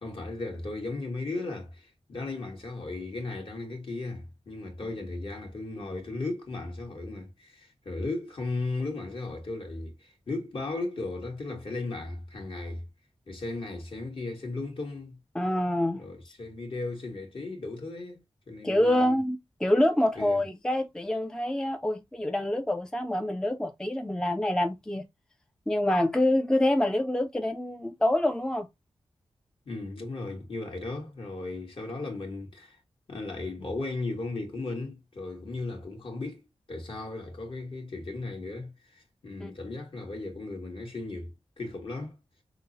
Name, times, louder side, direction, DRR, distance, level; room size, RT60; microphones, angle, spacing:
voice 1, 0.0-12.9 13.3-15.2 15.9-18.2 18.5-19.2 20.1-20.4 29.6-32.8 33.1-41.3 41.6-42.2, left 2 dB, 55° left, 1.4 m, -36 dB
voice 2, 15.3-16.0 18.6-25.0 25.7-28.7 39.4-39.5, left 1 dB, 5° left, 0.4 m, -26 dB
5.6 x 2.0 x 2.6 m
wide cardioid pair, 115°, 11 cm